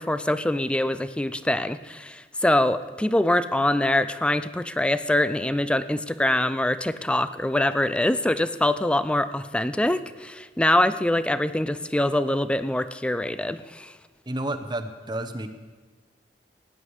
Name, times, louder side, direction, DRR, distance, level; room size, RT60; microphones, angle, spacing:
voice 1, 0.0-13.9, left 1 dB, 5° left, 13 dB, 0.4 m, -24 dB
voice 2, 14.3-15.5, right 1 dB, 25° right, 8 dB, 0.8 m, -30 dB
18.0 x 10.0 x 4.8 m, 1.4 s
head